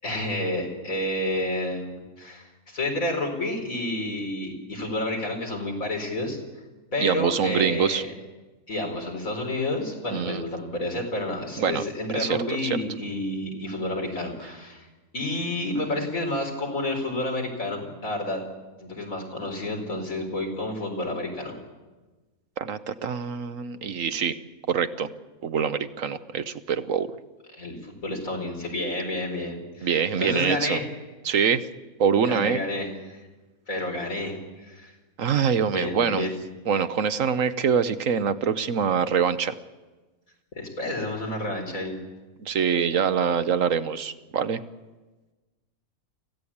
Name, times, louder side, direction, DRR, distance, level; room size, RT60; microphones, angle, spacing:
voice 1, 0.0-6.4 6.9-8.1 8.7-14.9 15.1-18.4 18.8-21.5 27.5-30.8 32.2-33.2 33.7-34.9 35.7-36.4 40.5-42.0, left 1 dB, 70° left, 2 dB, 4.7 m, -30 dB
voice 2, 7.0-8.0 10.1-10.4 11.6-11.8 12.1-12.8 22.6-24.4 24.7-25.1 25.4-27.1 29.8-30.8 31.2-31.7 32.0-32.6 35.2-36.3 36.7-39.6 42.4-44.6, right 7 dB, 70° right, 11 dB, 1.3 m, -24 dB
25.0 x 16.0 x 8.6 m, 1.2 s
omnidirectional pair, 1.5 m